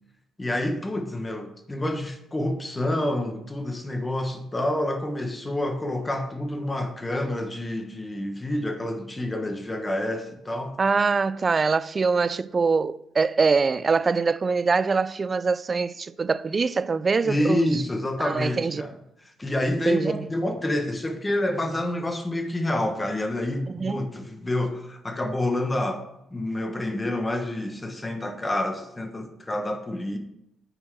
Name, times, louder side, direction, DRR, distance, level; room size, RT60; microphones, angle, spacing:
voice 1, 0.4-10.8 17.2-18.9 19.4-30.2, left 1 dB, 15° left, 1.3 m, -28 dB
voice 2, 10.8-17.8 18.2-18.9 19.9-20.3 23.7-24.0, right 4 dB, 30° right, 0.4 m, -24 dB
8.9 x 4.5 x 6.2 m
cardioid pair, 105°, 0 cm